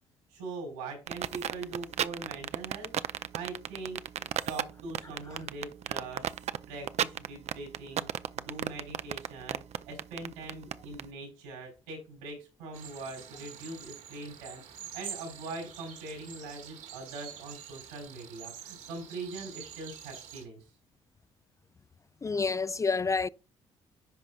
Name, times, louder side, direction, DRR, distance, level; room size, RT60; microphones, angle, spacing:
voice 1, 0.3-6.3 6.7-20.6, right 3 dB, 90° right, 4.0 m, -42 dB
sound 1, 1.1-11.0, right 10 dB, 50° right, 0.5 m, -33 dB
sound 2, 12.7-20.4, right 8 dB, 70° right, 1.7 m, -46 dB
voice 2, 22.2-23.3, left 4 dB, 25° left, 0.4 m, -28 dB
10.5 x 5.1 x 2.3 m
hypercardioid pair, 50°, 14 cm